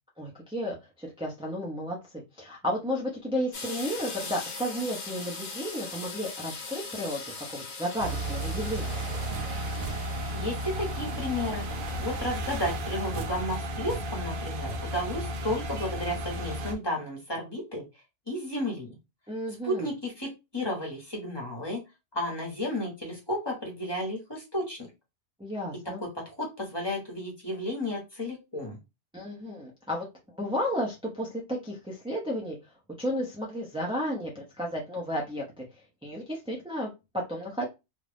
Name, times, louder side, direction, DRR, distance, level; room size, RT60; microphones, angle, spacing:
voice 1, 0.2-2.0 2.4-9.0 19.3-19.9 25.4-26.0 29.1-30.1 30.4-32.6 33.0-35.6 36.0-36.9 37.3-37.7, equal, 5° right, -3 dB, 0.6 m, -33 dB
sound 1, 3.5-12.2, left 4 dB, 60° left, 1.1 m, -41 dB
sound 2, 8.0-16.7, right 1 dB, 55° right, 0.6 m, -33 dB
voice 2, 10.3-11.6 12.0-17.8 18.3-18.9 19.6-21.8 22.1-24.9 25.8-28.8, left 1 dB, 20° left, -1 dB, 1.1 m, -33 dB
2.7 x 2.4 x 3.3 m, 0.24 s
omnidirectional pair, 1.2 m